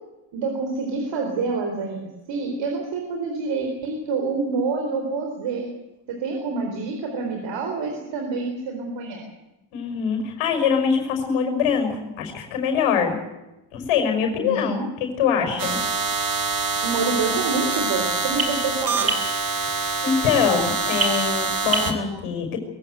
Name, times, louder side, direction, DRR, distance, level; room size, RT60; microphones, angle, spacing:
voice 1, 0.3-5.7 6.1-9.2 14.4-14.9 16.8-19.1, right 4 dB, 65° right, 3 dB, 4.3 m, -27 dB
voice 2, 9.7-13.2 13.7-15.8 20.0-22.6, left 6 dB, 85° left, 4 dB, 6.0 m, -23 dB
sound 1, 15.6-21.9, right 5 dB, 45° right, 3.7 m, -24 dB
22.5 x 16.5 x 8.1 m, 0.96 s
cardioid pair, 130°, 48 cm